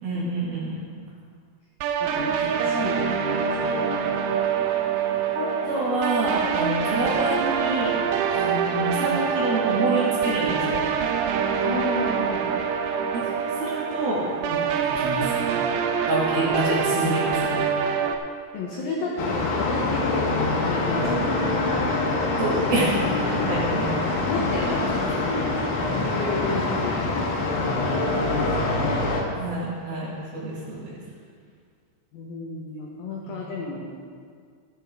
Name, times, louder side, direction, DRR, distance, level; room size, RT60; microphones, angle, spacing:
voice 1, 0.0-0.8 2.1-2.6 5.3-7.9 8.3-10.9 13.1-15.5 16.0-17.6 22.4-23.1 23.3-23.9 24.7-24.8 26.5-26.6 29.3-31.0 33.2-33.3, right 1 dB, 55° right, -6 dB, 3.2 m, -27 dB
sound 1, 1.8-18.2, right 7 dB, 80° right, 3.0 m, -25 dB
voice 2, 2.0-4.2 11.6-12.5 17.0-17.1 18.5-21.4 21.7-22.1 23.4-23.5 24.3-26.9 27.3-29.0 32.1-33.9, left 2 dB, 85° left, -3 dB, 2.0 m, -32 dB
sound 2, 19.2-29.2, left 2 dB, 65° left, 3.0 m, -25 dB
13.0 x 11.5 x 3.6 m, 2.1 s
omnidirectional pair, 6.0 m